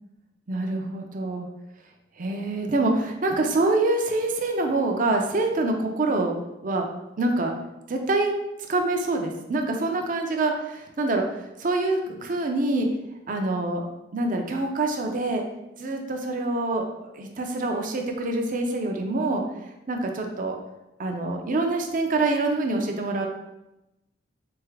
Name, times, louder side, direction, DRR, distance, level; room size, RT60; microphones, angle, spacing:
voice 1, 0.5-1.5 2.2-6.3 6.6-6.9 7.2-7.5 7.9-8.3 8.7-11.2 11.6-12.9 13.3-13.8 14.1-15.4 15.8-19.4 19.9-20.6 21.0-23.3, right 2 dB, 45° right, 3 dB, 0.6 m, -25 dB
3.9 x 3.5 x 3.3 m, 0.93 s
head